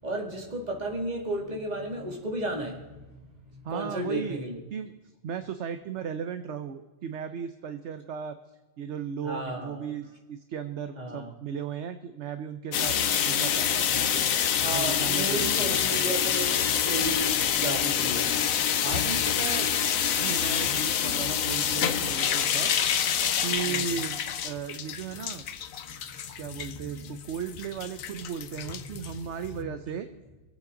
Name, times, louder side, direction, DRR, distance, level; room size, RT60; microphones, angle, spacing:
voice 1, 0.0-3.0 3.5-4.6 9.2-9.9 11.0-11.3 14.5-18.4 23.6-23.8 25.8-27.2 29.6-29.7, right 1 dB, 30° right, 0 dB, 2.4 m, -34 dB
voice 2, 3.6-4.4 4.7-4.9 5.2-8.4 8.8-13.0 13.2-14.3 14.6-16.2 18.8-19.7 20.2-22.7 23.4-25.4 26.4-30.1, right 8 dB, 60° right, 9 dB, 1.0 m, -36 dB
sound 1, 12.7-29.6, left 8 dB, 80° left, 1.2 m, -27 dB
25.0 x 8.7 x 3.8 m, 1.2 s
omnidirectional pair, 1.4 m